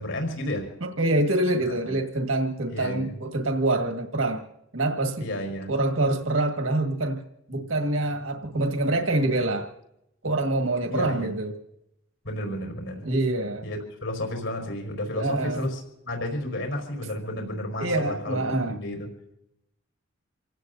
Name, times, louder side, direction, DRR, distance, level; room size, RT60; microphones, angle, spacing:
voice 1, 0.0-0.7 1.8-2.0 2.7-3.2 5.2-5.7 10.9-11.3 12.2-13.1 13.6-19.1, left 1 dB, 75° left, 3 dB, 5.1 m, -32 dB
voice 2, 0.8-4.4 4.7-5.3 5.7-7.2 7.5-9.7 10.2-11.5 13.0-13.6 15.2-15.7 17.8-18.8, right 2 dB, 85° right, 4 dB, 1.9 m, -25 dB
28.5 x 18.0 x 2.7 m, 0.81 s
head